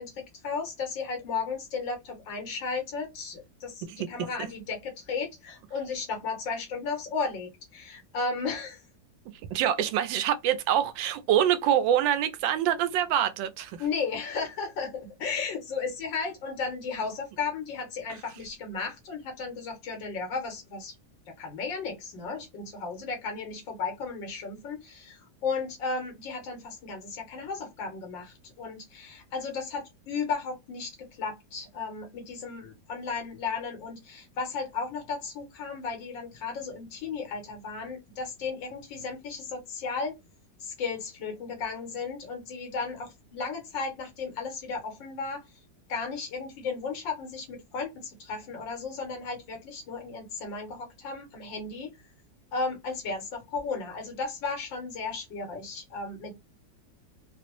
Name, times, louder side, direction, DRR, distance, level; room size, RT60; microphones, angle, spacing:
voice 1, 0.0-8.8 13.8-21.0 21.4-40.2 40.6-45.4 45.9-51.9 52.5-56.4, left 4 dB, 80° left, 1.8 m, -34 dB
voice 2, 9.5-13.8, right 10 dB, 90° right, 1.3 m, -25 dB
3.9 x 2.0 x 2.9 m
omnidirectional pair, 2.0 m